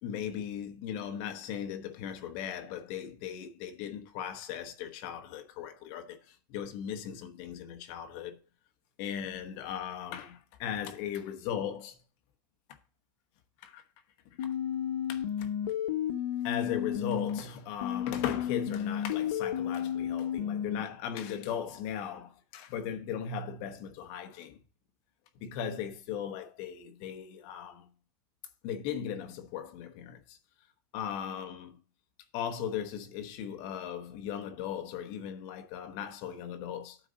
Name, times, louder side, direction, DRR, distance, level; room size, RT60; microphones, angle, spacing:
voice 1, 0.0-8.4 9.0-12.0 13.6-13.8 14.3-14.5 15.1-15.5 16.4-24.6 25.4-27.9 28.6-30.4 30.9-31.8 32.3-37.0, left 9 dB, 35° left, 1.0 m, -38 dB
sound 1, 14.4-17.4 17.8-20.8, left 9 dB, 70° left, 0.9 m, -32 dB
9.0 x 4.0 x 6.3 m
supercardioid pair, 180°, 12 cm